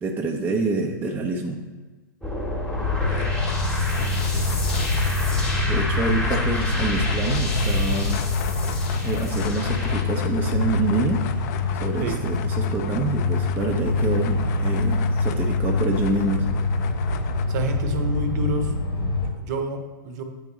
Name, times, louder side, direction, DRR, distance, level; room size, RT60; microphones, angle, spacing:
voice 1, 0.0-1.6 5.7-8.2 9.0-11.2 11.8-16.5, right 3 dB, 15° right, 1 dB, 0.5 m, -27 dB
sound 1, 2.2-10.0, left 1 dB, 5° left, 1.0 m, -27 dB
sound 2, 2.7-19.3, left 3 dB, 80° left, 1.1 m, -25 dB
sound 3, 3.0-17.4, left 9 dB, 45° left, 0.4 m, -37 dB
voice 2, 4.0-4.5 12.0-12.2 17.5-20.2, right 2 dB, 50° right, 6 dB, 0.8 m, -30 dB
9.8 x 3.4 x 3.0 m, 1.3 s
hypercardioid pair, 115°, 12 cm